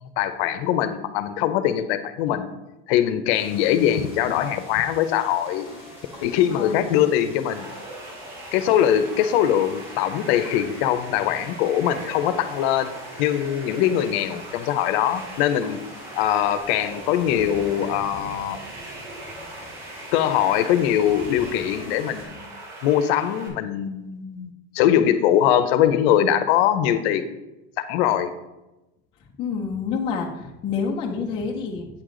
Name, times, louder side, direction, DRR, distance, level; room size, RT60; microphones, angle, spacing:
voice 1, 0.0-2.5 2.9-5.7 6.2-7.7 8.5-12.9 13.2-15.8 16.1-18.6 20.1-22.5 22.8-27.2 27.8-28.3, left 10 dB, 60° left, 11 dB, 0.7 m, -22 dB
sound 1, 3.3-22.2, left 1 dB, 5° right, 3.0 m, -44 dB
voice 2, 6.5-6.9 29.4-31.9, left 5 dB, 15° left, -1 dB, 0.3 m, -28 dB
sound 2, 7.5-23.5, right 2 dB, 75° right, 2.4 m, -40 dB
8.8 x 6.6 x 3.8 m, 1.0 s
cardioid pair, 175°, 36 cm